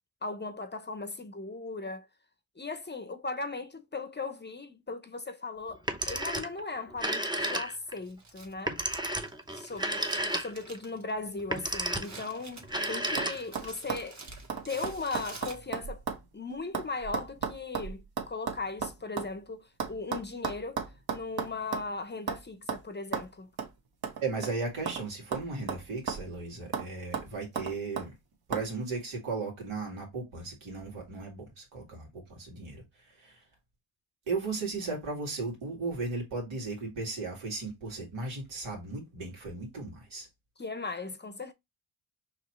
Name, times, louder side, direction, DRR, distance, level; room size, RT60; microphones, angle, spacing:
voice 1, 0.2-2.1 2.6-8.8 9.5-9.9 10.4-14.2 14.7-16.0 16.3-20.8 21.1-23.5 40.6-41.5, left 3 dB, 25° left, 0.7 m, -38 dB
Telephone, 5.7-6.6 6.9-8.0 8.7-10.8 11.4-12.2 12.6-13.7, right 1 dB, 10° right, 0.8 m, -32 dB
Crumpling crinkling, 7.4-16.0, right 3 dB, 35° right, 1.5 m, -50 dB
sound 1, 12.4-12.8 13.2-13.3 13.5-16.3 16.5-19.3 19.8-21.9 22.3-22.4 22.7-22.8 23.1-23.3 23.6-23.7 24.0-25.0 25.3-26.4 26.7-26.9 27.1-28.1 28.5-28.7, right 6 dB, 50° right, 1.2 m, -35 dB
voice 2, 24.2-28.1 28.5-33.4 34.3-40.3, right 3 dB, 80° right, 2.3 m, -36 dB
4.9 x 3.0 x 3.0 m
cardioid pair, 70°, 47 cm